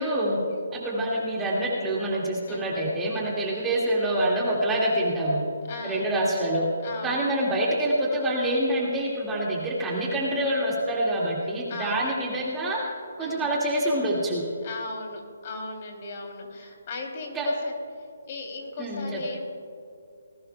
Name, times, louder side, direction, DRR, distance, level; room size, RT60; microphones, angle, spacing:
voice 1, 0.0-0.4 0.7-5.4 5.8-6.7 7.0-12.8 13.2-14.4 17.3-17.5 18.8-19.2, right 1 dB, 10° right, -4 dB, 2.0 m, -26 dB
voice 2, 2.5-2.8 3.5-3.8 5.7-6.1 6.8-7.3 11.7-12.1 13.2-13.5 14.6-17.7 18.3-19.4, left 3 dB, 40° left, 1 dB, 2.9 m, -37 dB
19.5 x 17.0 x 2.3 m, 2.4 s
hypercardioid pair, 160°, 0 cm